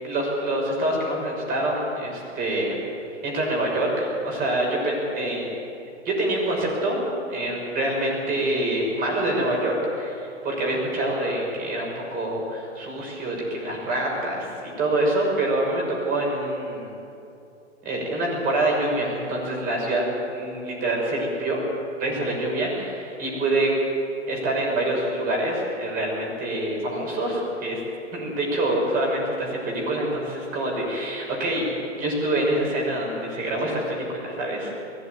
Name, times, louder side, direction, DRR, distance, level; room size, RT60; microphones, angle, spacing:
voice 1, 0.0-2.8 3.2-5.5 6.0-7.0 7.3-10.2 10.6-14.5 14.8-16.9 17.8-21.6 22.0-23.7 24.3-27.8 28.1-34.7, right 1 dB, 25° right, -2 dB, 6.5 m, -26 dB
20.5 x 16.0 x 9.5 m, 2.7 s
hypercardioid pair, 145°, 36 cm